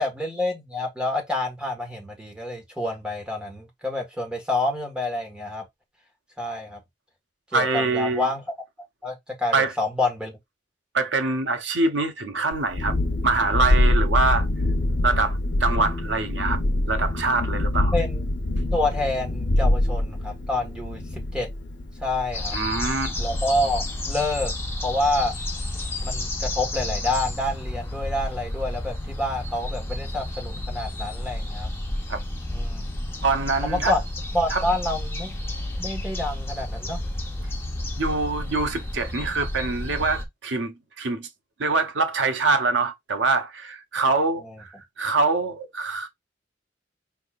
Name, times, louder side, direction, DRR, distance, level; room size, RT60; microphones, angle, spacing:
voice 1, 0.0-5.6 6.4-6.8 7.5-8.4 9.0-10.3 17.9-18.2 18.7-21.5 22.0-22.5 23.2-24.5 24.8-25.3 26.0-31.7 32.5-32.9 33.6-34.0 34.3-35.3 35.8-37.0 44.4-44.5, left 2 dB, 5° right, 1.5 m, -28 dB
voice 2, 7.5-8.3 9.5-9.7 10.9-12.9 13.2-14.5 15.0-16.6 16.9-17.9 22.5-23.1 32.1-32.2 33.2-34.0 34.5-34.6 38.0-41.3 41.6-46.1, right 3 dB, 80° right, 0.8 m, -24 dB
Thunderstorm, 12.5-24.1, left 1 dB, 80° left, 0.8 m, -25 dB
sound 1, 22.3-40.2, left 1 dB, 15° left, 0.8 m, -31 dB
4.5 x 3.4 x 2.4 m
head